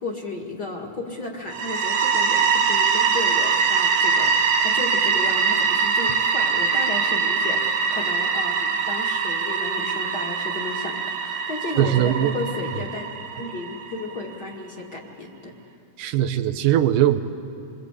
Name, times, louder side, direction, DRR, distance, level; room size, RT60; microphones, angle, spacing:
voice 1, 0.0-13.0 13.3-15.5, left 3 dB, 35° left, -1 dB, 2.3 m, -33 dB
sound 1, 1.5-14.2, right 5 dB, 70° right, 2.0 m, -23 dB
voice 2, 11.8-12.3 16.0-17.2, right 12 dB, 90° right, 7 dB, 2.5 m, -20 dB
27.5 x 22.5 x 8.3 m, 2.8 s
omnidirectional pair, 3.7 m